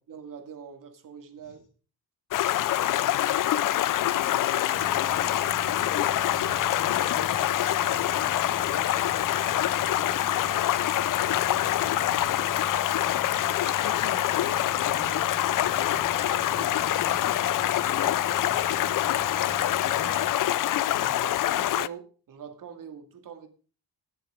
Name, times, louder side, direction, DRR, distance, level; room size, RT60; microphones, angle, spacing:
voice 1, 0.1-1.6 9.3-9.7 16.6-16.7 18.5-18.6 21.0-23.5, right 7 dB, 60° right, 6 dB, 2.4 m, -44 dB
Stream, 2.3-21.9, left 13 dB, 60° left, 0.5 m, -25 dB
voice 2, 3.9-5.7 6.3-8.9 11.3-13.1 13.6-16.0 16.4-18.2 19.8-20.2 20.9-21.2, left 8 dB, 90° left, 3 dB, 2.6 m, -42 dB
sound 1, 4.8-20.3, right 6 dB, 25° right, 0.6 m, -43 dB
13.0 x 9.9 x 5.0 m, 0.38 s
wide cardioid pair, 150°, 37 cm